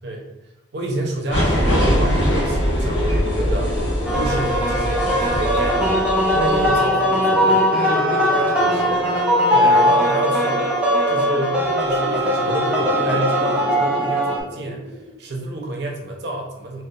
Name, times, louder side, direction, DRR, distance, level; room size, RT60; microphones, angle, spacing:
voice 1, 0.7-5.9 6.3-10.7 11.1-16.8, right 2 dB, 60° right, 0 dB, 0.5 m, -29 dB
sound 1, 1.3-6.8, equal, 70° left, 0.7 m, -22 dB
sound 2, 2.4-15.2, equal, 25° left, 0.7 m, -30 dB
sound 3, 4.1-14.4, equal, 5° right, 0.3 m, -20 dB
2.6 x 2.1 x 2.3 m, 0.96 s
head